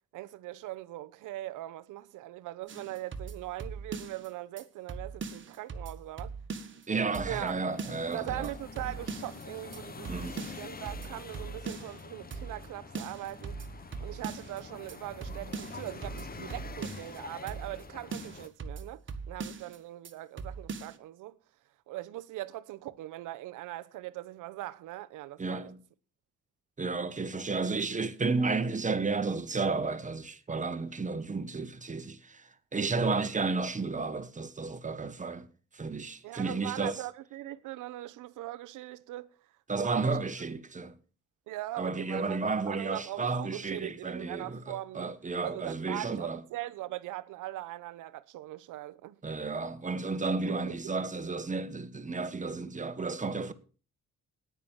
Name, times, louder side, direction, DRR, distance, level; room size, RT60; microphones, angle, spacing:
voice 1, 0.1-6.3 7.2-7.6 8.1-13.6 14.0-21.4 21.9-25.7 36.2-39.3 39.8-40.3 41.5-42.4 42.7-45.2 45.4-49.2 50.5-50.9, right 16 dB, 90° right, 0.9 m, -41 dB
sound 1, 2.7-4.3 4.6-4.7 4.9-6.9 7.1-7.5 7.8-9.4 9.7-9.8 10.0-12.0 12.3-12.7 12.9-14.6 14.9-15.0 15.2-17.2 17.5-17.8 18.1-19.8 20.0-20.1 20.4-21.0, right 5 dB, 40° right, 1.7 m, -40 dB
voice 2, 6.9-8.5 10.1-10.4 25.4-25.8 26.8-35.5 35.7-37.0 39.7-41.0 41.8-46.4 49.2-53.5, right 4 dB, 25° right, 1.4 m, -32 dB
sound 2, 7.1-18.5, left 4 dB, 30° left, 1.1 m, -46 dB
9.9 x 9.7 x 7.3 m
cardioid pair, 90°, 30 cm